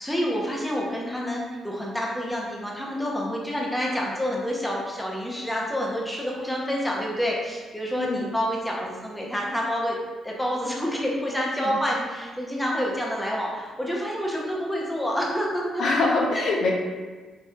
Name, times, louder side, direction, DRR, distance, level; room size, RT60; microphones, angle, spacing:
voice 1, 0.0-10.0 10.2-15.8 16.3-16.4, equal, 5° left, -3 dB, 0.8 m, -28 dB
voice 2, 15.8-16.7, left 3 dB, 65° left, -2 dB, 0.6 m, -23 dB
4.4 x 3.1 x 2.4 m, 1.3 s
cardioid pair, 90°, 0 cm